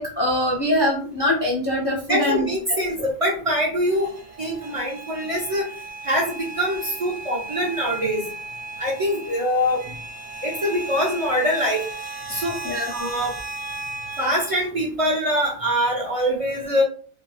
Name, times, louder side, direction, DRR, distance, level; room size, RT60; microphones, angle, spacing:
voice 1, 0.0-2.8 12.6-12.9, left 1 dB, 45° left, -3 dB, 0.3 m, -23 dB
voice 2, 2.1-4.1 4.4-5.7 6.0-8.2 8.8-9.8 10.4-11.9 12.3-12.6 12.9-13.3 14.2-16.8, equal, 40° right, -2 dB, 0.5 m, -23 dB
sound 1, 3.9-14.7, right 2 dB, 60° right, 1.0 m, -36 dB
2.5 x 2.2 x 3.1 m, 0.42 s
omnidirectional pair, 1.2 m